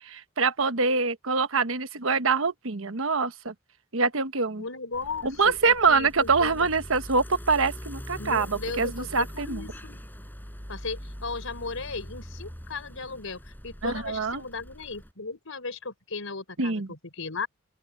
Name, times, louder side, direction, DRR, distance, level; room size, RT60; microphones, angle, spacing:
voice 1, 0.1-3.5 3.9-4.7 5.2-9.6 13.8-14.4 16.6-16.9, right 4 dB, 70° right, 1.2 m, -25 dB
voice 2, 4.6-6.7 8.2-10.0 10.7-17.5, left 4 dB, 70° left, 4.8 m, -36 dB
sound 1, 4.9-15.1, equal, 10° left, 6.6 m, -42 dB
open air
head